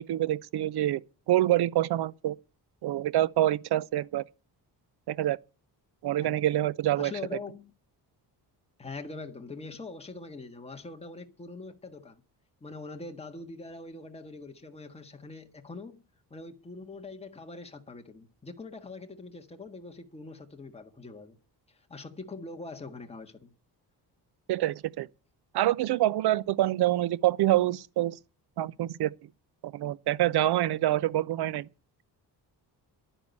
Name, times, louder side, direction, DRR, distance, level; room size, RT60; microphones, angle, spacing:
voice 1, 0.0-2.4 2.8-4.2 5.1-5.4 6.0-7.1 24.5-25.1 25.5-28.2 28.6-29.1 29.6-31.7, right 14 dB, 70° right, 0.7 m, -26 dB
voice 2, 7.0-7.7 8.8-12.2 12.6-16.0 16.3-21.4 21.7-23.5, left 3 dB, 15° left, 1.6 m, -43 dB
11.0 x 9.8 x 8.2 m
wide cardioid pair, 170°, 40 cm